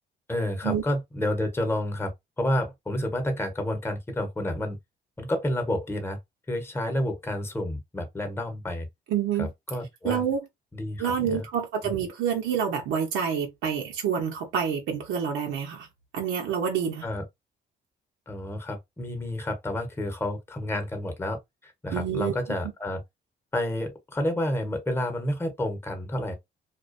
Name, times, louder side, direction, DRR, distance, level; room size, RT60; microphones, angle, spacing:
voice 1, 0.3-4.8 5.2-6.2 6.5-8.9 9.4-10.2 10.7-11.4 11.8-11.9 17.0-17.2 18.3-23.0 23.5-26.3, left 1 dB, 10° left, 0.8 m, -30 dB
voice 2, 9.1-9.5 10.0-10.4 11.0-15.9 16.1-17.0 21.9-22.3, right 7 dB, 90° right, 0.7 m, -27 dB
2.4 x 2.2 x 2.5 m
cardioid pair, 90°, 20 cm